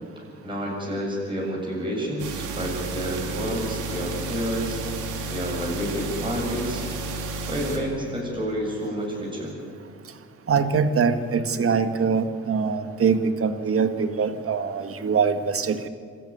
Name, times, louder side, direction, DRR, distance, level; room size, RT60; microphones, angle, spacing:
voice 1, 0.4-4.8 5.3-6.8 7.5-9.5, equal, 15° right, -3 dB, 7.6 m, -29 dB
sound 1, 2.2-7.8, right 2 dB, 85° right, 3.3 m, -32 dB
voice 2, 10.5-15.8, right 5 dB, 45° right, 9 dB, 1.8 m, -23 dB
26.5 x 14.0 x 9.7 m, 2.1 s
cardioid pair, 90°, 30 cm